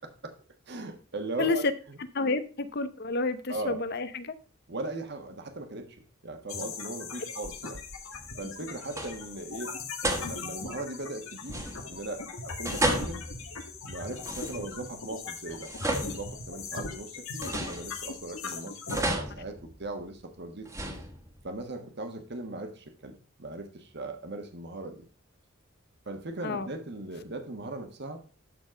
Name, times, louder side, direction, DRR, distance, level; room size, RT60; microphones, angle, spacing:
voice 1, 0.7-2.0 3.5-3.8 4.7-7.8 8.4-13.2 13.8-20.7 21.4-25.0 26.1-28.2, right 2 dB, 55° right, 6 dB, 1.4 m, -39 dB
voice 2, 2.1-4.3 26.4-26.7, left 3 dB, 50° left, 12 dB, 0.8 m, -30 dB
sound 1, 6.5-19.0, left 4 dB, 90° left, 1.5 m, -39 dB
sound 2, 8.1-8.6 8.9-9.4 10.0-10.7 11.5-12.1 12.6-14.9 15.5-16.8 17.4-18.4 18.9-20.1 20.6-21.5, right 1 dB, 15° right, 1.5 m, -34 dB
12.5 x 4.2 x 5.1 m, 0.37 s
head